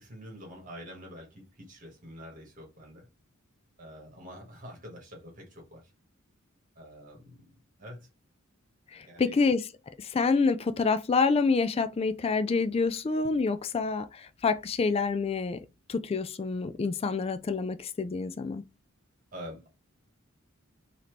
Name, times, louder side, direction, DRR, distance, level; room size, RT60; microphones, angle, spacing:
voice 1, 0.0-3.1 3.8-5.9 6.7-7.5 7.8-8.1 9.0-9.4 19.3-19.7, equal, 40° right, 1.6 m, -46 dB
voice 2, 8.9-9.7 10.0-15.6 15.9-18.6, left 4 dB, 30° left, 0.3 m, -27 dB
4.1 x 2.8 x 3.1 m
head